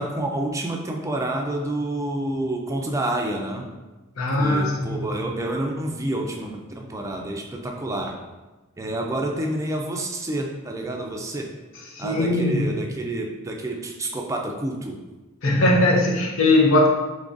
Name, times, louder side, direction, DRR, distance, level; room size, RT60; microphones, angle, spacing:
voice 1, 0.0-3.7 4.4-8.1 8.8-11.4 12.0-15.0, right 1 dB, 15° right, 1 dB, 0.4 m, -28 dB
voice 2, 4.2-5.1 11.9-12.6 15.4-16.9, left 2 dB, 75° left, -2 dB, 0.7 m, -20 dB
3.7 x 3.2 x 2.5 m, 1.1 s
head